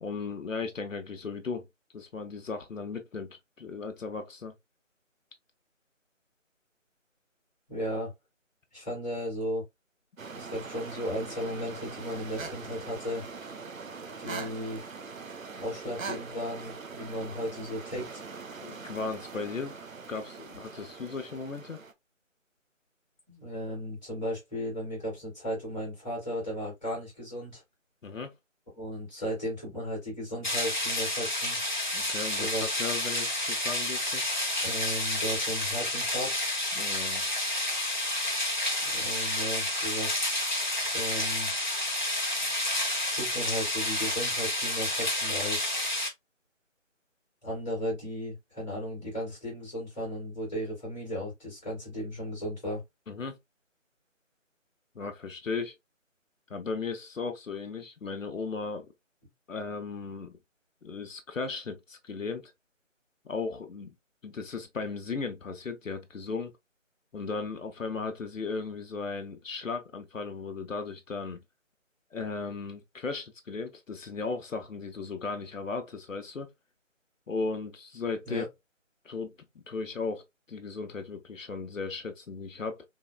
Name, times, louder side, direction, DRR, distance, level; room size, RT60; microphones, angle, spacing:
voice 1, 0.0-1.7 1.9-4.5 18.6-19.7 20.1-21.8 28.0-28.3 31.9-34.2 36.7-37.2 53.1-53.4 54.9-55.7 56.5-58.9 59.5-60.3 60.8-62.5 63.2-63.9 64.2-66.5 67.1-71.4 72.1-76.5 77.3-78.5 79.0-79.3 79.7-82.8, left 4 dB, 75° left, 0.9 m, -36 dB
voice 2, 7.7-8.1 8.7-9.6 10.3-13.2 14.2-14.8 15.6-18.2 23.3-27.6 28.8-31.6 32.4-32.8 34.6-36.5 38.8-40.3 40.9-41.5 43.1-45.7 47.4-52.8 78.3-78.5, equal, 5° left, 1.9 m, -35 dB
sound 1, 10.2-21.9, right 4 dB, 85° right, 1.0 m, -42 dB
sound 2, 30.4-46.1, left 1 dB, 35° left, 0.9 m, -30 dB
3.9 x 3.1 x 2.2 m
figure-of-eight pair, 180°, 39 cm